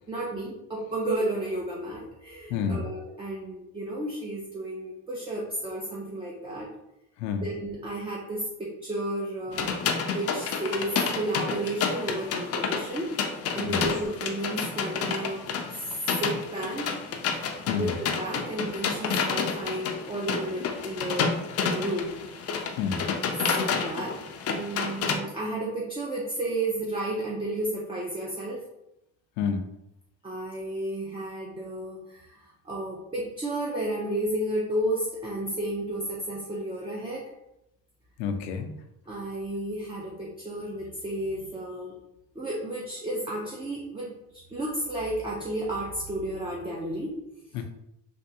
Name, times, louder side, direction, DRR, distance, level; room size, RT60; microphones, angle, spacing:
voice 1, 0.1-6.7 7.4-9.8 10.1-13.1 13.5-15.4 15.7-16.9 17.7-21.4 21.6-22.1 23.6-28.6 30.2-37.3 39.1-41.9 42.3-47.2, right 1 dB, 15° right, -4 dB, 0.6 m, -32 dB
voice 2, 2.5-2.8 7.2-7.5 13.6-13.8 17.3-17.9 22.8-23.0 29.4-29.7 38.2-38.7 47.5-47.6, left 6 dB, 85° left, 6 dB, 0.6 m, -29 dB
sound 1, 9.5-25.2, left 5 dB, 40° left, 0.5 m, -30 dB
3.5 x 2.4 x 2.8 m, 0.86 s
supercardioid pair, 95°, 36 cm